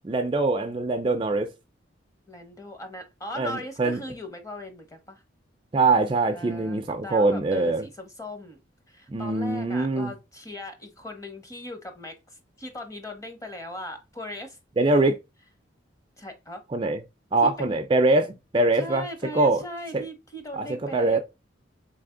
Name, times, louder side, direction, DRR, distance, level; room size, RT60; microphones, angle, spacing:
voice 1, 0.0-1.5 3.4-4.0 5.7-7.8 9.1-10.1 14.8-15.2 16.7-17.0 17.3-19.1 19.3-19.6 19.9-20.0 20.6-21.2, right 2 dB, 25° right, 0.4 m, -23 dB
voice 2, 2.3-5.2 6.3-8.6 8.9-14.6 16.2-16.6 17.4-17.8 18.8-21.2, left 1 dB, 15° left, 0.9 m, -39 dB
4.1 x 3.4 x 3.7 m
head